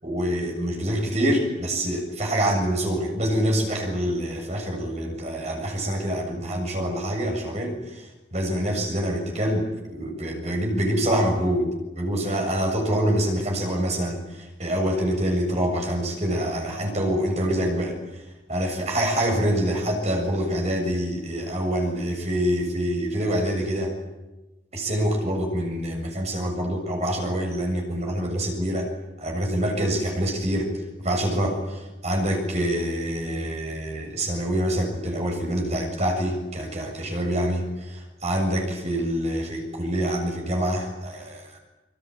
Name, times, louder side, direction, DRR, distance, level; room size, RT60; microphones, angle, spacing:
voice 1, 0.0-8.1 8.3-11.7 12.0-18.2 18.5-23.9 24.7-28.9 29.2-30.7 31.0-41.6, equal, 40° right, 2 dB, 7.2 m, -26 dB
25.5 x 24.0 x 8.9 m, 1.1 s
head